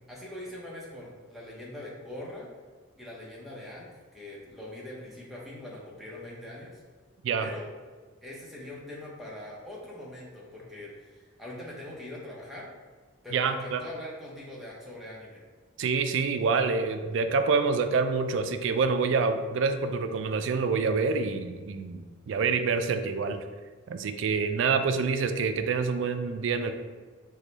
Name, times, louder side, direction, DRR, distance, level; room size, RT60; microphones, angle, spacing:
voice 1, 0.1-2.5 3.0-6.8 7.4-7.7 8.2-12.7 13.2-15.4, left 1 dB, ahead, -5 dB, 0.7 m, -42 dB
voice 2, 13.3-13.8 15.8-23.4 23.9-26.7, right 4 dB, 65° right, 8 dB, 0.3 m, -27 dB
4.7 x 2.2 x 3.9 m, 1.4 s
head